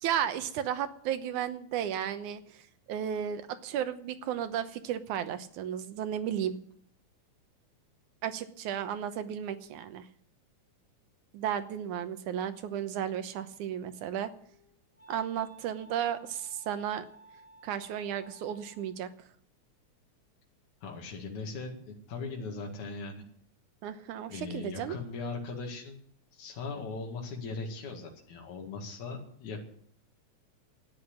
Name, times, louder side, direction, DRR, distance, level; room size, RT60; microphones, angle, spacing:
voice 1, 0.0-2.6 2.9-6.6 8.2-10.1 11.3-14.3 15.1-17.1 17.6-19.1 23.8-25.0, right 9 dB, 85° right, 10 dB, 2.5 m, -34 dB
Wind instrument woodwind instrument, 14.0-19.1, right 2 dB, 25° left, 2.6 m, -57 dB
voice 2, 20.8-23.2 24.3-26.0 26.3-29.6, left 4 dB, 75° left, 1 dB, 3.5 m, -39 dB
12.5 x 10.0 x 9.8 m, 0.63 s
omnidirectional pair, 3.4 m